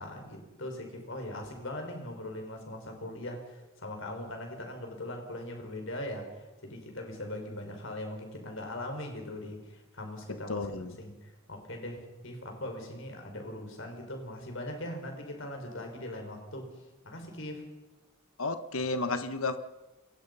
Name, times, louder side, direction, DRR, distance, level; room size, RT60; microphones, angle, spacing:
voice 1, 0.0-6.3 6.6-16.7 17.0-17.6, left 1 dB, 65° left, 4 dB, 5.4 m, -40 dB
voice 2, 10.5-11.0 18.4-19.6, left 3 dB, 80° left, 10 dB, 1.3 m, -32 dB
28.0 x 23.0 x 5.6 m, 1.1 s
head